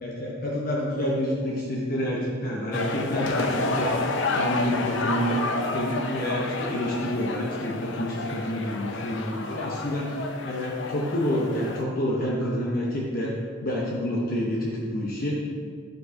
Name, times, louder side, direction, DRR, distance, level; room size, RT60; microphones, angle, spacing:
voice 1, 0.0-5.4 5.7-10.1 10.4-13.3 13.6-15.4, left 1 dB, 45° left, -4 dB, 1.0 m, -28 dB
sound 1, 2.7-11.8, left 2 dB, 65° left, 0.7 m, -30 dB
10.5 x 5.5 x 5.0 m, 2.1 s
head